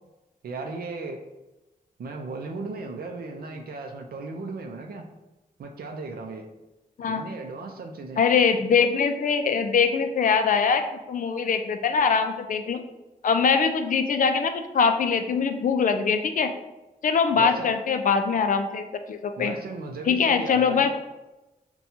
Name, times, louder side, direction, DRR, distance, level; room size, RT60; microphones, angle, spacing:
voice 1, 0.4-1.2 2.0-5.0 5.6-6.5 7.0-8.2 17.4-17.7 19.4-20.9, right 3 dB, 85° right, 3 dB, 0.4 m, -36 dB
voice 2, 8.2-10.8 11.1-12.8 13.2-16.5 17.0-19.6 20.1-20.9, left 6 dB, 60° left, 7 dB, 0.4 m, -22 dB
5.6 x 2.3 x 2.7 m, 1.0 s
wide cardioid pair, 145°, 15 cm